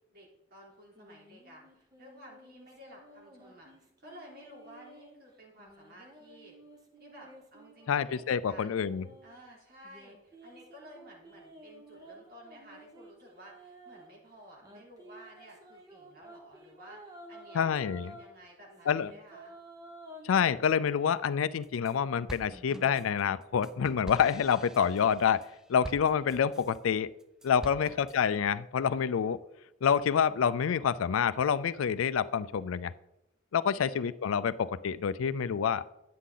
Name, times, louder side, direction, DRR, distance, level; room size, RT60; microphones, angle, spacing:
voice 1, 0.1-6.5 7.0-8.9 9.2-19.6 27.6-28.1 33.7-34.1, equal, 50° right, -3 dB, 3.4 m, -54 dB
sound 1, 0.9-5.2 5.6-9.3 9.8-14.1 14.6-18.3 18.7-20.5, right 1 dB, 20° right, 1.1 m, -53 dB
voice 2, 7.9-9.1 17.5-18.1 18.9-19.1 20.2-25.4 25.7-27.1 27.4-29.4 29.8-32.9 33.5-35.9, left 7 dB, 80° left, 16 dB, 0.4 m, -27 dB
sound 2, 21.4-21.9 22.3-26.8 27.2-28.2, equal, 5° right, 0.4 m, -46 dB
9.9 x 8.4 x 3.8 m, 0.88 s
head